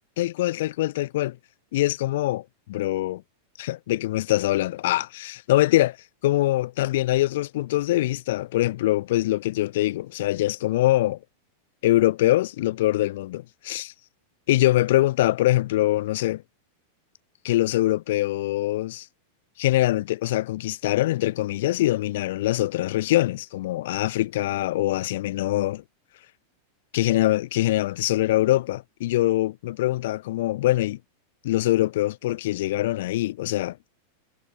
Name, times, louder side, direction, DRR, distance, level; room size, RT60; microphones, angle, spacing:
voice 1, 0.2-1.4 1.7-3.2 3.6-6.0 6.2-11.2 11.8-13.9 14.5-16.4 17.4-19.0 19.6-25.8 26.9-31.0 31.4-33.8, left 16 dB, 55° left, 0.9 m, -23 dB
figure-of-eight pair, 90°, 0 cm